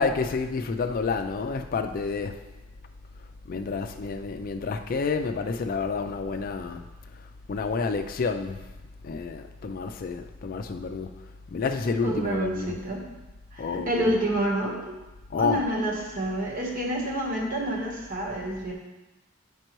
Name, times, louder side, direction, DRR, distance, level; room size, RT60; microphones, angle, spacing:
voice 1, 0.0-2.4 3.5-6.8 7.5-8.6 9.0-11.1 11.5-12.8 13.6-14.2 15.3-15.6, left 4 dB, 45° left, 7 dB, 0.4 m, -29 dB
voice 2, 12.0-13.1 13.5-15.0 15.4-18.7, right 1 dB, 45° right, -1 dB, 1.1 m, -28 dB
7.8 x 5.3 x 3.0 m, 1.1 s
head